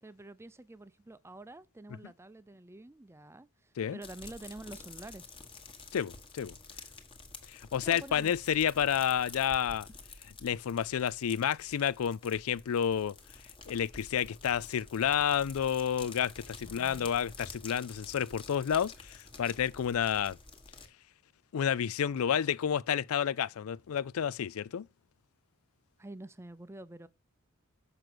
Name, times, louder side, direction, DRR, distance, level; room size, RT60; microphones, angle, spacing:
voice 1, 0.0-5.4 7.8-8.3 16.6-17.1 26.0-27.1, right 2 dB, 10° right, 0.5 m, -48 dB
sound 1, 4.0-20.9, left 3 dB, 25° left, 1.4 m, -50 dB
voice 2, 5.9-6.5 7.5-9.9 10.4-13.2 13.7-20.4 21.5-24.9, left 8 dB, 70° left, 0.4 m, -30 dB
6.8 x 6.1 x 6.1 m
head